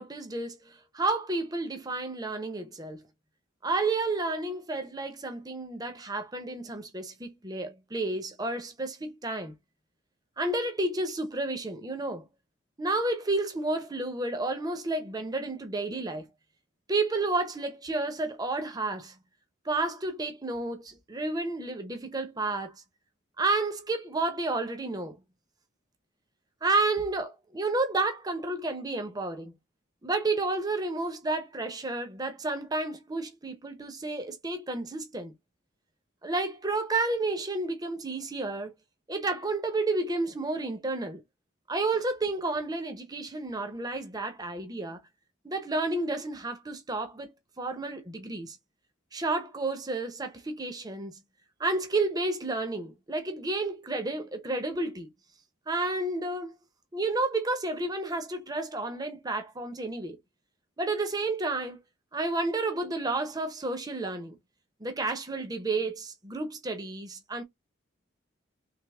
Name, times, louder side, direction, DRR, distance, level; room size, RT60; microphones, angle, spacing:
voice 1, 0.0-3.0 3.6-9.5 10.4-12.3 12.8-16.3 16.9-19.2 19.6-22.8 23.4-25.2 26.6-29.5 30.0-35.3 36.2-38.7 39.1-41.2 41.7-45.0 45.4-48.6 49.1-51.2 51.6-55.1 55.7-56.5 56.9-60.2 60.8-61.8 62.1-64.4 64.8-67.4, right 2 dB, 20° right, 0.8 m, -31 dB
3.4 x 3.3 x 3.4 m
head